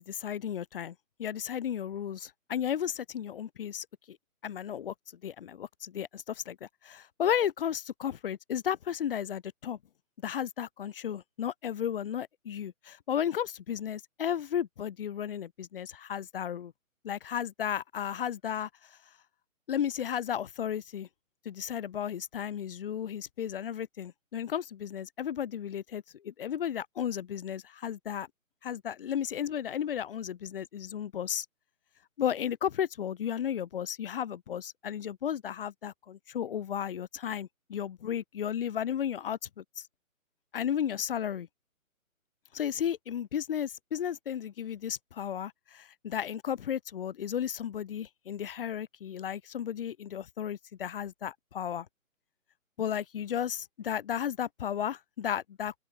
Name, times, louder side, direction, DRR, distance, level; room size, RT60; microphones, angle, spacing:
voice 1, 0.0-3.8 4.4-4.9 5.2-6.6 6.8-9.8 10.2-16.7 17.0-18.7 19.7-21.1 21.4-28.3 28.6-31.4 32.2-39.8 40.5-41.5 42.5-51.9 52.8-55.8, left 9 dB, 40° left, 1.4 m, -34 dB
open air
figure-of-eight pair, 145°, 42 cm